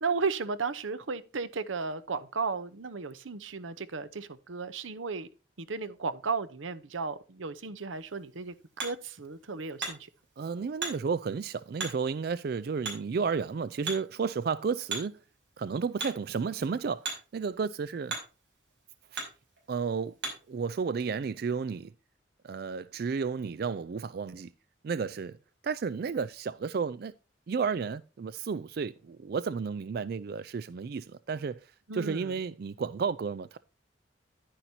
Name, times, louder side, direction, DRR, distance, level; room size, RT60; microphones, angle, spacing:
voice 1, 0.0-5.3 5.6-8.5 8.8-10.0 31.9-32.4, right 4 dB, 90° right, 0.8 m, -34 dB
Hammer, 7.9-20.6, right 3 dB, 70° right, 5.3 m, -42 dB
voice 2, 10.4-15.1 15.6-18.1 19.7-20.1 20.5-21.9 22.4-24.5 24.8-25.4 25.6-27.1 27.5-33.6, right 5 dB, 50° right, 0.3 m, -32 dB
10.5 x 9.9 x 2.8 m
head